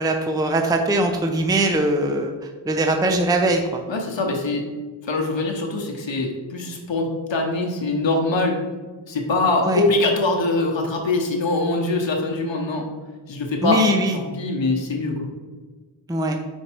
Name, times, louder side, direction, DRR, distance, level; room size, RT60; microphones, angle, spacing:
voice 1, 0.0-3.8 9.6-9.8 13.6-14.2 16.1-16.4, right 1 dB, 10° right, 4 dB, 0.5 m, -21 dB
voice 2, 3.9-4.6 5.0-8.6 9.1-12.9 13.3-13.8 14.1-15.3, left 2 dB, 75° left, 1 dB, 1.0 m, -23 dB
5.2 x 4.5 x 4.4 m, 1.4 s
wide cardioid pair, 85°, 45 cm